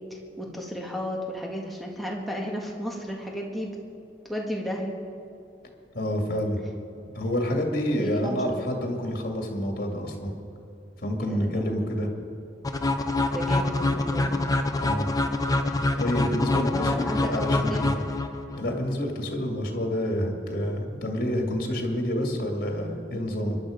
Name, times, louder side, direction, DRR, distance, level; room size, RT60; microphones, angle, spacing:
voice 1, 0.1-3.8 4.3-5.0 8.0-8.6 11.2-11.9 13.3-14.6 16.5-17.9, equal, ahead, -2 dB, 1.8 m, -33 dB
voice 2, 5.9-6.6 7.1-10.3 11.0-12.1 14.8-15.1 16.0-17.9 18.5-23.6, equal, 50° left, 2 dB, 2.3 m, -28 dB
sound 1, 12.6-18.6, left 2 dB, 20° left, 0.7 m, -25 dB
23.5 x 11.0 x 5.1 m, 2.6 s
head